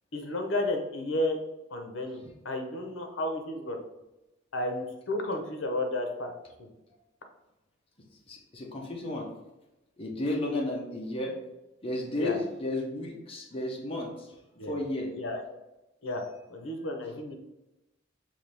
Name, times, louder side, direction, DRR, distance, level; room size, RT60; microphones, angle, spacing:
voice 1, 0.1-1.4 1.7-3.8 4.5-6.3 10.4-10.6 12.2-12.4 14.6-14.7 15.1-15.4 16.0-16.2 16.5-17.3, left 1 dB, 75° left, 4 dB, 0.8 m, -32 dB
voice 2, 8.3-9.3 10.0-11.4 11.8-14.3 14.7-15.1, left 1 dB, 30° left, -2 dB, 0.9 m, -33 dB
5.7 x 2.7 x 3.3 m, 0.97 s
head